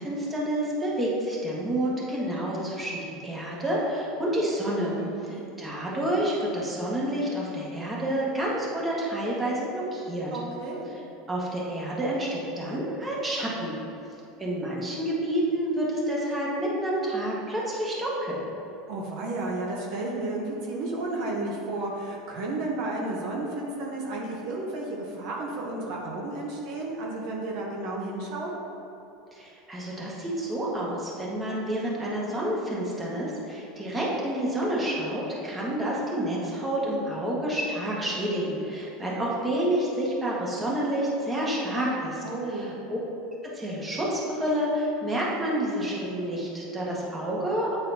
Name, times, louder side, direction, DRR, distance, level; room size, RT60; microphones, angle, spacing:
voice 1, 0.0-10.3 10.9-11.0 11.3-13.7 14.4-18.4 29.3-43.0 43.5-47.8, right 1 dB, 15° right, -5 dB, 1.4 m, -29 dB
voice 2, 5.0-5.4 10.3-10.9 18.9-28.6 42.2-42.8, right 2 dB, 65° right, -2 dB, 0.9 m, -32 dB
8.8 x 4.0 x 2.7 m, 2.9 s
supercardioid pair, 120°, 0 cm